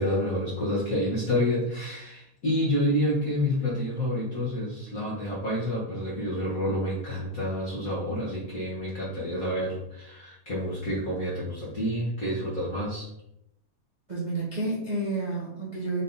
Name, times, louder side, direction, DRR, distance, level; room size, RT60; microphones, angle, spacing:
voice 1, 0.0-13.1, left 1 dB, 40° left, -7 dB, 1.3 m, -28 dB
voice 2, 14.1-16.0, right 2 dB, 25° right, -7 dB, 0.9 m, -30 dB
6.4 x 3.7 x 4.0 m, 0.81 s
omnidirectional pair, 3.4 m